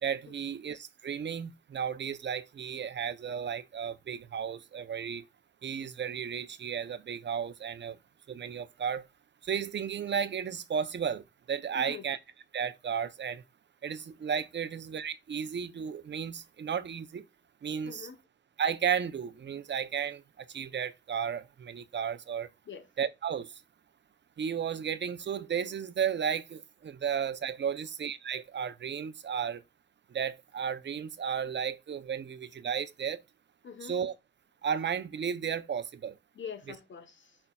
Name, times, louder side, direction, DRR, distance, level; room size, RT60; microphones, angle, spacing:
voice 1, 0.0-5.2 5.6-8.0 8.3-9.0 9.4-12.2 12.5-13.4 13.8-17.2 17.6-18.1 18.6-22.5 23.0-23.5 24.4-29.6 30.1-33.2 33.8-34.1 34.6-36.2, right 7 dB, 70° right, 0.6 m, -34 dB
voice 2, 17.8-18.2 22.7-22.9 33.6-33.9 36.3-37.4, left 7 dB, 85° left, 1.0 m, -44 dB
8.7 x 5.5 x 2.3 m
cardioid pair, 70°, 19 cm